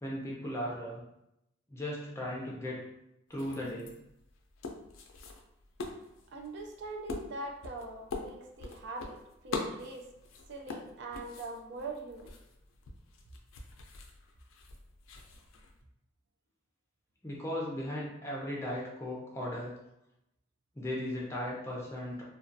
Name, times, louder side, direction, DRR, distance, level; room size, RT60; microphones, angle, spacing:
voice 1, 0.0-1.0 1.7-2.8 3.3-3.9 17.2-19.7 20.7-22.2, left 1 dB, 15° left, -4 dB, 0.5 m, -37 dB
sound 1, 3.3-15.8, left 3 dB, 75° left, 0.4 m, -44 dB
voice 2, 6.3-9.2 9.4-10.1 10.5-12.3, right 2 dB, 55° right, 2 dB, 0.3 m, -42 dB
2.3 x 2.2 x 2.6 m, 0.84 s
head